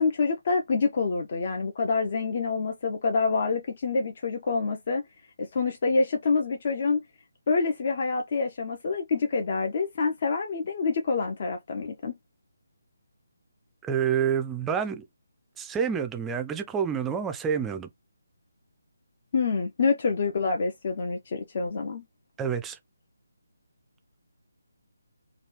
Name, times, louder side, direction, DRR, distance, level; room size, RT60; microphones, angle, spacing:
voice 1, 0.0-5.0 5.4-7.0 7.5-12.1 19.3-22.0, left 4 dB, 40° left, 0.5 m, -27 dB
voice 2, 13.8-15.0 15.6-17.9 22.4-22.8, right 7 dB, 10° right, 0.4 m, -28 dB
3.0 x 2.3 x 3.2 m
figure-of-eight pair, 150°, 0 cm